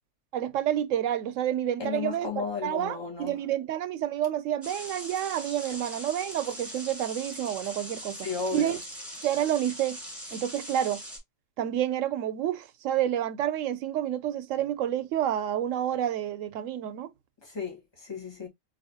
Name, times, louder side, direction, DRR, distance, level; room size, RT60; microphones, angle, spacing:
voice 1, 0.3-8.2 8.5-8.8 9.2-10.0 10.3-11.0 11.6-17.1, right 11 dB, 90° right, 0.9 m, -29 dB
voice 2, 1.8-3.4 8.2-8.8 17.4-18.5, left 5 dB, 20° left, 1.2 m, -34 dB
sound 1, 4.6-11.2, equal, 10° right, 1.7 m, -41 dB
3.9 x 2.9 x 2.6 m
omnidirectional pair, 1.3 m